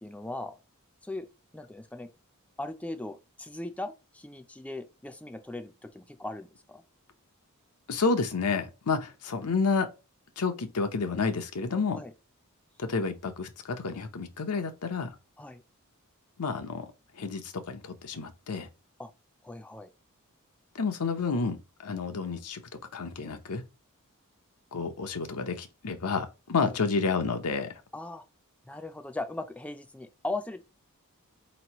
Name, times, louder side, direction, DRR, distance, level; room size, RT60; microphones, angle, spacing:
voice 1, 0.0-0.6 1.0-1.3 1.5-2.1 2.6-6.8 11.9-12.1 15.4-15.6 19.0-19.1 19.4-19.9 26.6-26.8 27.9-28.2 28.6-30.6, left 2 dB, 5° left, 0.4 m, -38 dB
voice 2, 7.9-9.9 10.4-12.0 12.8-15.1 16.4-16.9 17.2-18.7 20.7-21.6 21.8-22.6 22.9-23.6 24.7-27.7, left 4 dB, 90° left, 0.7 m, -30 dB
4.3 x 3.0 x 2.9 m
head